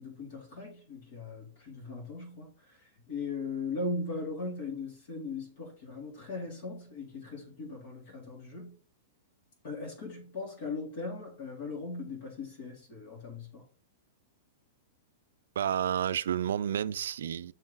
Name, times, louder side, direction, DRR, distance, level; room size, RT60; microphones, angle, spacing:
voice 1, 0.0-8.8 9.6-13.6, left 3 dB, 55° left, 3.2 m, -39 dB
voice 2, 15.6-17.5, right 9 dB, 85° right, 0.3 m, -30 dB
6.3 x 3.9 x 3.8 m
supercardioid pair, 150°, 0 cm